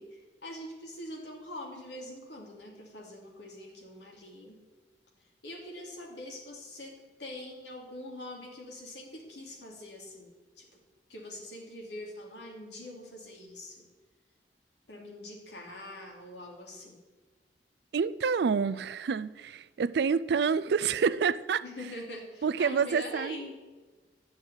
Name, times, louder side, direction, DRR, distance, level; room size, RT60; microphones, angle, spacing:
voice 1, 0.0-4.6 5.4-10.8 11.1-13.9 14.9-17.0 21.6-23.5, left 1 dB, 80° left, 2.8 m, -44 dB
voice 2, 17.9-21.6 22.4-23.4, right 6 dB, 65° right, 0.4 m, -28 dB
10.5 x 6.3 x 8.0 m
head